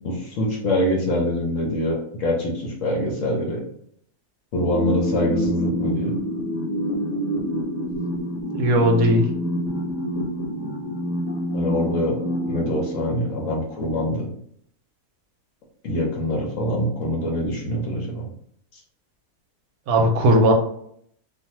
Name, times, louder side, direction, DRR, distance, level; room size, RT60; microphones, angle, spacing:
voice 1, 0.0-3.6 4.5-6.1 11.5-12.2 12.5-14.3 15.8-18.3, left 1 dB, 65° left, -1 dB, 0.9 m, -24 dB
sound 1, 4.7-13.7, equal, 85° left, 1.2 m, -27 dB
voice 2, 8.5-9.3 19.9-20.5, right 1 dB, 70° right, 1 dB, 1.0 m, -17 dB
2.5 x 2.4 x 2.9 m, 0.67 s
omnidirectional pair, 1.7 m